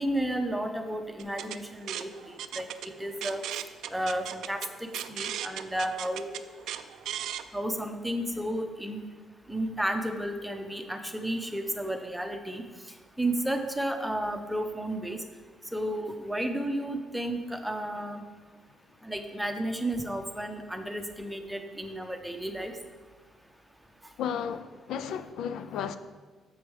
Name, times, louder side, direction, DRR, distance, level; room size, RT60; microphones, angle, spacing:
voice 1, 0.0-3.4 3.9-6.4 7.5-9.0 9.5-12.6 13.2-15.2 15.7-18.2 19.0-22.7, right 1 dB, 5° right, 5 dB, 0.8 m, -32 dB
sound 1, 1.2-7.4, right 11 dB, 80° right, 0.3 m, -37 dB
voice 2, 24.2-26.0, left 8 dB, 80° left, 12 dB, 0.4 m, -33 dB
7.0 x 5.1 x 4.8 m, 1.4 s
cardioid pair, 90°, 0 cm